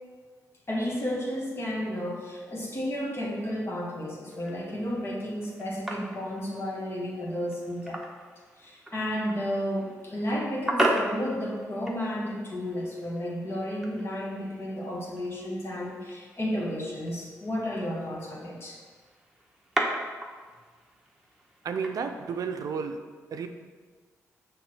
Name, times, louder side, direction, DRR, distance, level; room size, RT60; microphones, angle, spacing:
voice 1, 0.7-8.0 8.6-18.8, equal, 40° left, -3 dB, 2.2 m, -32 dB
sound 1, 4.3-22.9, right 1 dB, 5° right, 1.3 m, -37 dB
voice 2, 21.6-23.0 23.3-23.5, right 6 dB, 70° right, 7 dB, 0.5 m, -32 dB
6.9 x 3.7 x 6.2 m, 1.5 s
cardioid pair, 60°, 6 cm